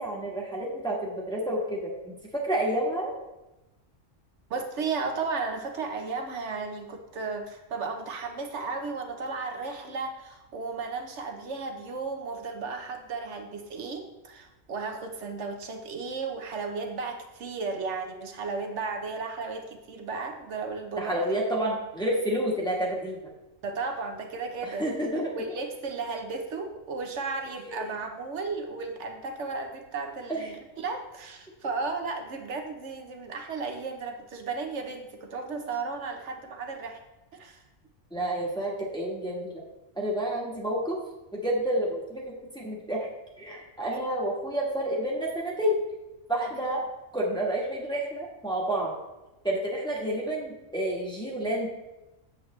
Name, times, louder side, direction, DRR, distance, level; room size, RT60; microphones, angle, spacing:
voice 1, 0.0-3.1 21.0-23.3 24.6-25.6 27.7-27.9 30.3-30.5 38.1-39.6 40.0-41.0 41.3-43.1 43.4-45.8 46.3-46.8 47.1-48.9 49.4-51.7, right 1 dB, 5° left, -4 dB, 1.4 m, -29 dB
voice 2, 4.5-21.2 23.6-24.9 25.3-37.0 37.3-37.6 43.9-44.1 46.4-46.5, right 4 dB, 65° right, 4 dB, 1.2 m, -34 dB
8.0 x 7.6 x 3.2 m, 1.0 s
omnidirectional pair, 1.3 m